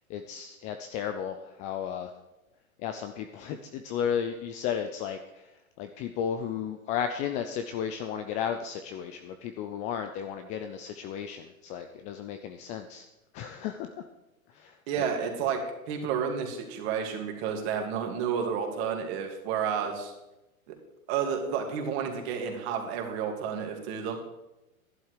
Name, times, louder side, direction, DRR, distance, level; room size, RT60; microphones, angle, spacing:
voice 1, 0.1-2.1 2.8-5.5 5.8-13.0 13.3-14.0 14.5-14.8 19.8-19.9, left 8 dB, 20° left, 7 dB, 0.4 m, -34 dB
voice 2, 14.9-15.6 15.9-20.1 20.7-20.8 21.1-24.2, right 7 dB, 45° right, 2 dB, 2.9 m, -31 dB
12.0 x 11.0 x 4.9 m, 0.96 s
hypercardioid pair, 110°, 42 cm